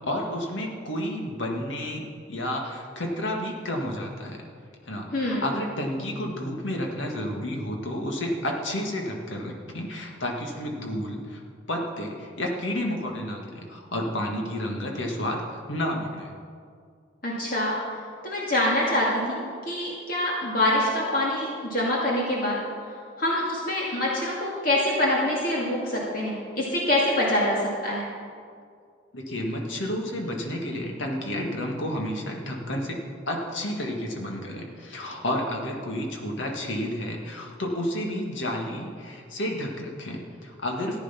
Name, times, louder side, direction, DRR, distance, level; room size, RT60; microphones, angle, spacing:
voice 1, 0.0-2.0 2.3-4.4 4.9-11.4 11.7-16.3 29.1-33.0 33.3-41.0, left 1 dB, 75° left, 1 dB, 1.9 m, -31 dB
voice 2, 5.1-5.5 17.2-17.8 18.2-22.6 23.2-27.6 27.8-28.0, left 1 dB, 45° left, -4 dB, 2.1 m, -25 dB
14.5 x 9.3 x 5.8 m, 2.1 s
head